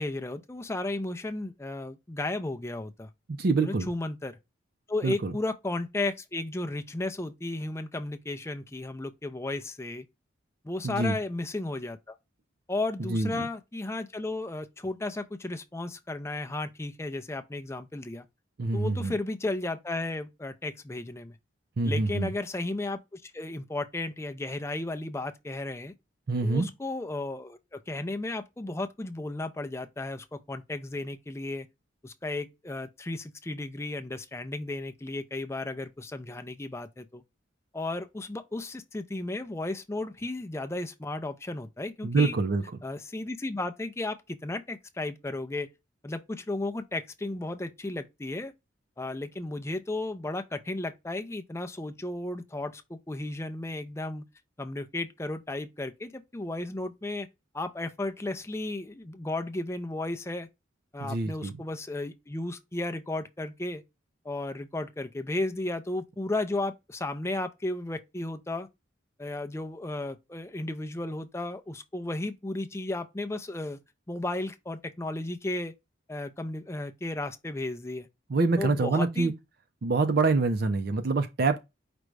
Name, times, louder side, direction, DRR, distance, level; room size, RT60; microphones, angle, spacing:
voice 1, 0.0-3.1 3.6-4.4 4.9-10.0 10.6-12.2 12.7-18.2 18.7-21.4 21.8-25.9 26.4-31.7 32.0-37.2 37.7-42.3 42.8-45.7 46.0-48.5 49.0-54.2 54.6-57.3 57.5-60.5 60.9-63.8 64.2-68.7 69.2-73.8 74.1-75.7 76.1-78.1 78.6-79.3, left 2 dB, 15° left, 0.4 m, -34 dB
voice 2, 3.3-3.9 5.0-5.3 10.8-11.2 13.0-13.5 18.6-19.1 21.8-22.3 26.3-26.7 42.0-42.6 61.0-61.5 78.3-79.3 79.8-81.6, right 3 dB, 50° right, 0.5 m, -26 dB
5.1 x 2.2 x 4.6 m
head